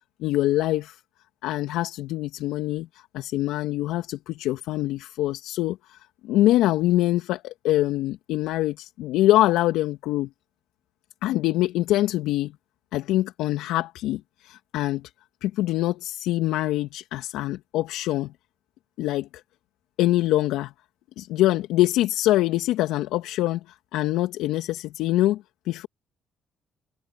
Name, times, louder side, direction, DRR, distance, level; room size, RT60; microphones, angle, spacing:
voice 1, 0.2-1.0 1.4-10.3 11.2-12.5 12.9-15.1 15.4-18.3 19.0-19.3 20.0-20.7 21.2-25.9, left 15 dB, 75° left, 2.3 m, -24 dB
hypercardioid pair, 55°, 0 cm